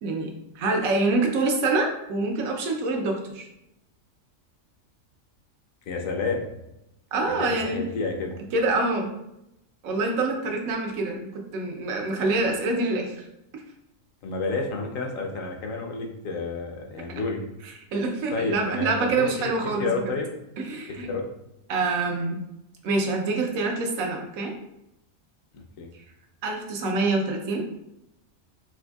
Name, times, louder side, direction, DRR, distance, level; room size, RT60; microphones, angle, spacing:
voice 1, 0.5-3.5 7.1-7.8 8.5-9.1 9.8-13.3 13.5-13.6 17.9-20.1 20.6-21.1 21.7-22.4 22.8-24.5 26.4-27.6, right 3 dB, 85° right, 2 dB, 1.1 m, -26 dB
voice 2, 5.9-6.5 7.4-8.4 14.2-17.4 18.3-19.3 19.8-20.3 20.9-21.2 25.8-25.9, left 3 dB, 75° left, 2 dB, 1.0 m, -30 dB
4.2 x 2.5 x 2.3 m, 0.85 s
omnidirectional pair, 1.4 m